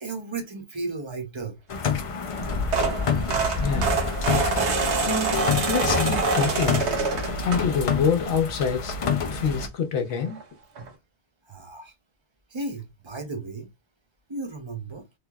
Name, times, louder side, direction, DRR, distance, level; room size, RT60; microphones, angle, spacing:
voice 1, 0.0-1.6 11.4-11.9 12.5-13.7 14.3-15.1, right 3 dB, 30° right, 0.6 m, -34 dB
sound 1, 1.7-9.7, left 6 dB, 55° left, 0.3 m, -28 dB
sound 2, 2.4-8.0 8.5-8.7 10.0-10.1 10.3-10.4 10.8-10.9, right 3 dB, 80° right, 1.2 m, -26 dB
voice 2, 3.6-4.0 5.0-5.4 5.7-6.9 7.4-9.0 9.3-10.4, left 6 dB, 80° left, 1.0 m, -26 dB
3.3 x 2.9 x 2.2 m
omnidirectional pair, 1.1 m